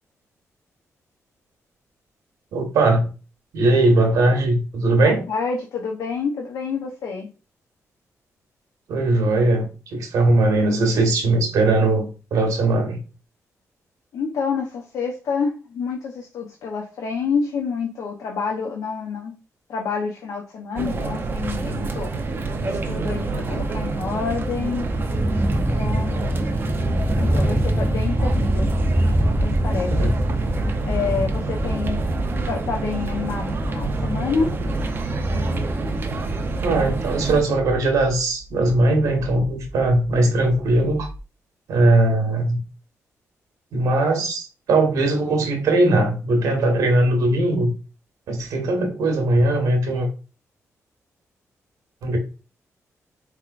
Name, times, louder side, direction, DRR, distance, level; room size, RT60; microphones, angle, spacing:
voice 1, 2.5-3.1 3.5-5.2 8.9-13.0 30.0-30.1 36.6-41.1 41.7-42.6 43.7-47.7 48.3-50.1 52.0-52.2, right 2 dB, 85° right, 3 dB, 1.2 m, -19 dB
voice 2, 5.0-7.3 14.1-19.3 19.7-22.1 22.6-24.9 25.8-26.2 27.1-28.7 29.0-30.1 30.8-32.0 32.5-34.6, left 5 dB, 85° left, 0 dB, 0.8 m, -28 dB
sound 1, 20.8-37.4, right 3 dB, 40° right, 0.7 m, -28 dB
sound 2, 23.5-41.2, equal, 10° right, 0.4 m, -26 dB
4.4 x 3.6 x 2.5 m, 0.33 s
cardioid pair, 115°, 6 cm